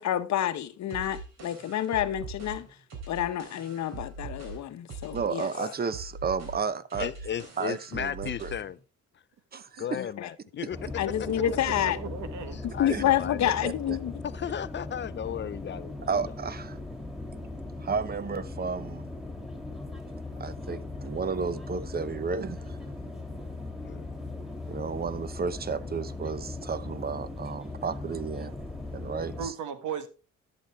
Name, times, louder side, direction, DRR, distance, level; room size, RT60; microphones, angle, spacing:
voice 1, 0.0-2.7 3.1-5.5 10.0-10.3 11.0-12.0 12.8-14.1, left 11 dB, 65° left, 0.9 m, -28 dB
sound 1, 0.9-8.7, right 3 dB, 60° right, 3.9 m, -42 dB
voice 2, 5.1-7.1 7.6-8.5 9.5-10.1 10.6-10.7 12.9-13.0 13.6-14.0 16.0-16.8 17.8-19.1 20.4-22.8 24.7-28.6 28.9-29.5, right 5 dB, 30° right, 0.8 m, -32 dB
voice 3, 7.0-8.8 9.8-10.8 12.7-13.5 14.3-16.0 23.9-24.1, left 9 dB, 40° left, 0.4 m, -35 dB
voice 4, 9.5-9.9 11.2-12.6 29.4-30.1, right 7 dB, 75° right, 1.5 m, -37 dB
sound 2, 10.7-29.5, left 2 dB, ahead, 2.5 m, -39 dB
11.0 x 6.9 x 3.5 m
cardioid pair, 90°, 30 cm